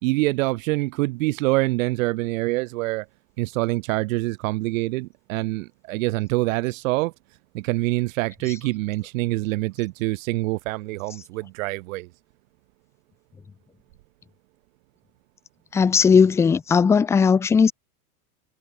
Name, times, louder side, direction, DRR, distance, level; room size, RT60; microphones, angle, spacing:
voice 1, 0.0-3.1 3.4-7.1 7.5-12.1, right 22 dB, 60° right, 3.8 m, -25 dB
voice 2, 15.7-17.7, left 6 dB, 5° left, 0.4 m, -17 dB
supercardioid pair, 145°, 44 cm